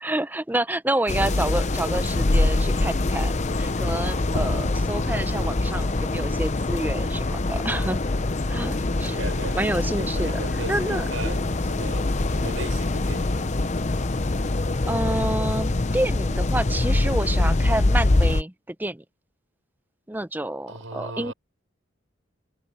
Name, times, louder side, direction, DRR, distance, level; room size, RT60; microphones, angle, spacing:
voice 1, 0.0-8.0 8.5-9.2 9.6-10.4 10.7-11.1 11.4-11.5 14.8-19.0 20.1-21.3, right 1 dB, 10° right, 0.6 m, -28 dB
sound 1, 1.1-18.4, left 2 dB, 35° left, 0.7 m, -24 dB
sound 2, 4.3-8.5, left 2 dB, 65° left, 1.2 m, -36 dB
voice 2, 9.1-9.6 10.0-13.5 20.7-21.3, right 3 dB, 85° right, 5.3 m, -36 dB
head